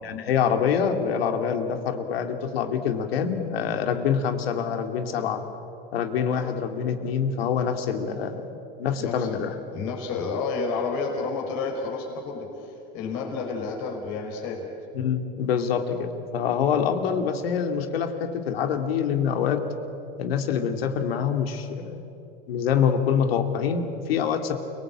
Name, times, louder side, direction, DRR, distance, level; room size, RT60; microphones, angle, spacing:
voice 1, 0.0-5.4 5.9-8.5 8.8-9.5 14.9-19.6 20.2-22.1 22.5-24.6, left 7 dB, 85° left, 6 dB, 2.6 m, -25 dB
voice 2, 9.0-9.4 9.7-14.7, left 4 dB, 60° left, 1 dB, 5.4 m, -30 dB
29.5 x 19.5 x 8.8 m, 2.8 s
hypercardioid pair, 105°, 29 cm